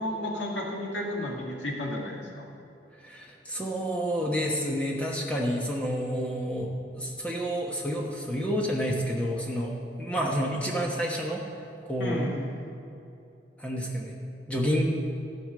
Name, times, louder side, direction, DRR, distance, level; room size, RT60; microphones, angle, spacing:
voice 1, 0.0-2.5 12.0-12.4, left 1 dB, 90° left, -2 dB, 2.3 m, -32 dB
voice 2, 3.0-11.4 11.9-12.3 13.6-14.1 14.5-14.8, equal, 5° left, -2 dB, 1.1 m, -29 dB
14.5 x 5.3 x 7.6 m, 2.7 s
head